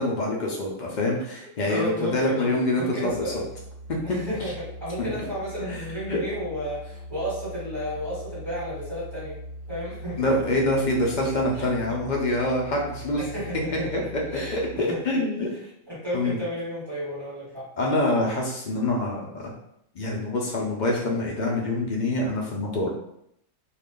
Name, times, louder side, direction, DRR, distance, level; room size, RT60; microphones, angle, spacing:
voice 1, 0.0-3.4 3.9-4.2 5.0-5.1 5.6-5.8 6.1-6.2 10.2-13.2 13.9-14.0 14.5-15.5 16.1-16.4 17.8-19.4 19.9-22.9, left 1 dB, 55° left, -2 dB, 0.5 m, -25 dB
voice 2, 1.4-3.4 4.0-9.4 9.7-10.4 11.5-12.0 13.2-15.0 15.6-17.7, equal, 20° right, -9 dB, 1.0 m, -33 dB
Musical instrument, 3.0-15.1, right 1 dB, 65° right, 0.8 m, -41 dB
2.4 x 2.4 x 3.6 m, 0.74 s
omnidirectional pair, 1.4 m